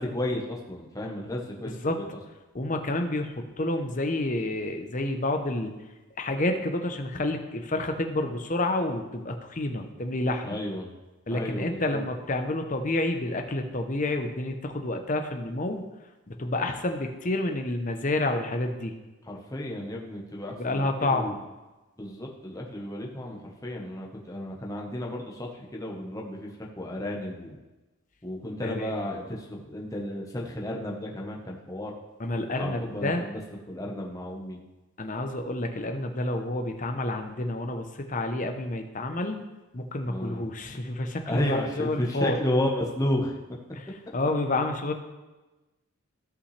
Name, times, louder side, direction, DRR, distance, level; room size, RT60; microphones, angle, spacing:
voice 1, 0.0-2.2 10.4-10.9 11.3-12.0 19.2-21.3 22.0-27.6 28.2-31.9 32.6-33.4 33.7-34.6 40.0-40.4 41.3-43.4, left 1 dB, 15° left, -2 dB, 1.1 m, -32 dB
voice 2, 1.6-2.0 2.5-5.7 6.2-10.6 11.3-15.9 16.3-18.9 20.6-21.4 28.6-29.3 32.2-33.2 35.0-39.4 39.7-42.4 43.8-44.9, left 2 dB, 35° left, 5 dB, 0.8 m, -29 dB
15.5 x 5.6 x 3.3 m, 1.1 s
head